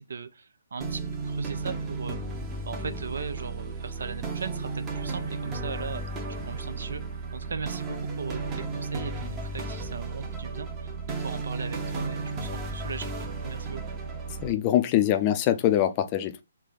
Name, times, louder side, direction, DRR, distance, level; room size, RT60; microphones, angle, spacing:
voice 1, 0.0-2.2 2.6-6.0 6.5-7.0 7.3-13.8, right 5 dB, 60° right, 0.6 m, -38 dB
sound 1, 0.8-14.5, right 3 dB, 20° right, 0.8 m, -34 dB
voice 2, 14.4-16.4, left 12 dB, 25° left, 0.5 m, -23 dB
3.3 x 3.0 x 4.0 m
figure-of-eight pair, 135°, 0 cm